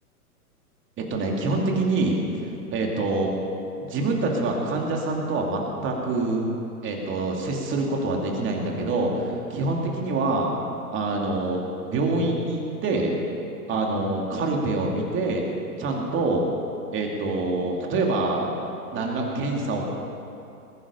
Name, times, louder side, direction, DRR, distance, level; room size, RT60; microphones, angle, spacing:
voice 1, 1.0-3.3 3.8-6.4 6.8-10.5 10.9-11.6 11.9-13.1 13.7-15.4 15.8-16.4 16.9-18.5 18.9-19.8, right 2 dB, 25° right, 0 dB, 2.6 m, -25 dB
20.5 x 10.5 x 5.6 m, 2.7 s
hypercardioid pair, 120°, 46 cm